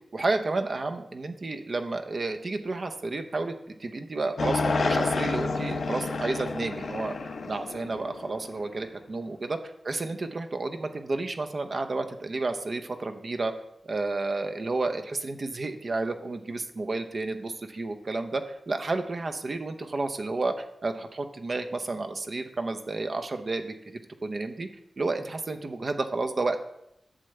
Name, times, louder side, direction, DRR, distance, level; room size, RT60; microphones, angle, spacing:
voice 1, 0.1-7.2 7.4-9.6 9.8-13.5 13.8-24.7 25.0-26.6, right 3 dB, 45° right, 6 dB, 0.8 m, -31 dB
sound 1, 4.4-8.7, left 3 dB, 70° left, 0.7 m, -29 dB
11.5 x 7.8 x 3.3 m, 0.81 s
wide cardioid pair, 140°, 0 cm